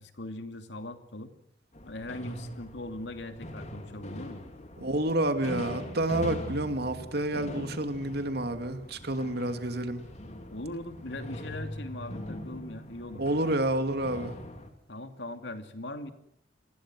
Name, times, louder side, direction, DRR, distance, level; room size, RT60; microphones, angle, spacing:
voice 1, 0.0-1.3 1.9-4.4 10.5-13.2 14.9-16.1, left 1 dB, 75° left, 2.7 m, -40 dB
sound 1, 1.7-14.7, left 1 dB, 40° left, 3.6 m, -42 dB
voice 2, 4.8-10.0 13.2-14.3, right 1 dB, 60° right, 2.7 m, -29 dB
28.5 x 21.0 x 6.3 m
head